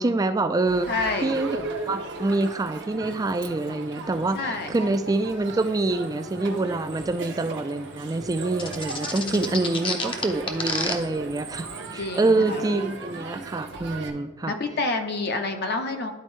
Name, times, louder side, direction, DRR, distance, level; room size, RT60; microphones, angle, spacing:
voice 1, 0.0-0.9 1.2-14.5, right 2 dB, 20° right, 10 dB, 0.3 m, -26 dB
Crowd, 0.7-14.1, right 3 dB, 60° right, 0.8 m, -37 dB
voice 2, 0.9-1.3 4.3-4.7 9.2-9.7 12.0-12.7 14.5-16.1, left 3 dB, 55° left, 6 dB, 0.7 m, -28 dB
sound 1, 8.6-10.9, left 4 dB, 25° left, 0.7 m, -28 dB
11.5 x 4.3 x 3.1 m, 1.0 s
head